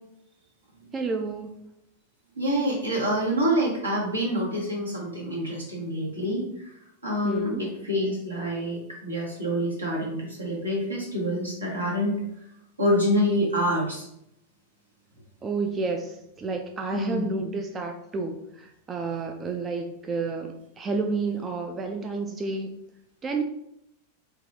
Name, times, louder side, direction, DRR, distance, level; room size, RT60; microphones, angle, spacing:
voice 1, 0.9-1.6 7.2-7.7 15.4-22.7 23.2-23.4, right 4 dB, 20° right, 4 dB, 0.3 m, -30 dB
voice 2, 2.4-6.4 7.0-12.2 12.8-14.0 16.9-17.2, equal, 80° right, -3 dB, 1.1 m, -26 dB
3.8 x 2.4 x 2.6 m, 0.78 s
figure-of-eight pair, 90°, 0 cm